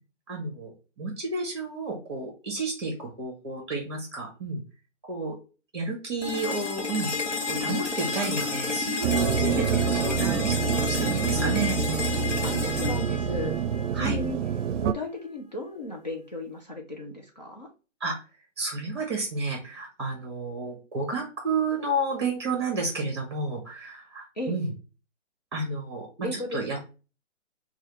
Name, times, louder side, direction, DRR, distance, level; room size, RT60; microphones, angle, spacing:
voice 1, 0.3-0.7 1.0-4.6 5.1-5.4 5.7-7.1 7.5-9.5 9.9-10.6 11.0-11.8 13.9-14.2 18.0-18.2 18.6-24.7 25.5-26.8, right 3 dB, 20° right, 1 dB, 1.0 m, -31 dB
sound 1, 6.2-14.2, left 4 dB, 75° left, 1.2 m, -31 dB
sound 2, 9.0-14.9, right 7 dB, 75° right, 0.5 m, -27 dB
voice 2, 12.4-13.6 13.9-14.4 14.8-17.7 24.4-24.6 26.2-26.8, left 1 dB, 35° left, 0 dB, 0.5 m, -35 dB
4.2 x 2.3 x 3.1 m, 0.33 s
hypercardioid pair, 175°, 36 cm